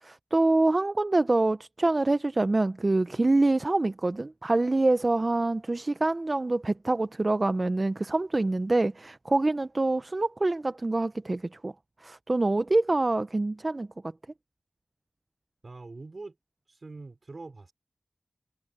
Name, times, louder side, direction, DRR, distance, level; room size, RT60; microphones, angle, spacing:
voice 1, 0.0-11.7 12.0-13.9, right 2 dB, 45° right, 0.6 m, -25 dB
voice 2, 15.6-16.4 16.7-17.7, right 3 dB, 65° right, 5.4 m, -43 dB
cardioid pair, 45°, 0 cm